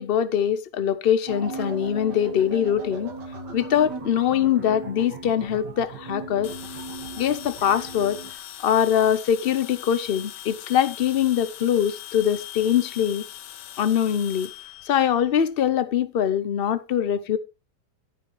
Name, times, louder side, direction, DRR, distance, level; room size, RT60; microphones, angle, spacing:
voice 1, 0.0-3.1 3.5-6.5 7.2-8.2 8.6-13.2 13.8-14.5 14.9-17.4, left 9 dB, 65° left, 0.5 m, -23 dB
sound 1, 1.3-8.3, right 3 dB, 70° right, 2.7 m, -37 dB
sound 2, 6.4-15.7, left 11 dB, 80° left, 1.4 m, -41 dB
11.5 x 10.5 x 3.2 m
omnidirectional pair, 1.9 m